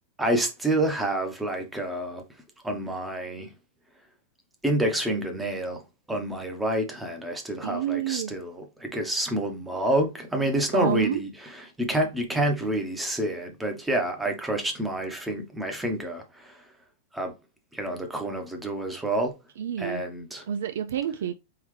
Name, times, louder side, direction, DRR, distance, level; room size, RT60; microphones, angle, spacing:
voice 1, 0.2-2.2 2.6-3.5 4.6-5.8 6.1-16.6 17.1-17.3 17.7-19.3 19.8-20.5, right 1 dB, 5° right, 0.9 m, -28 dB
voice 2, 7.6-8.3 10.7-11.2 19.6-20.0 20.5-21.3, right 9 dB, 75° right, 0.4 m, -28 dB
4.2 x 3.8 x 3.1 m
supercardioid pair, 160°, 0 cm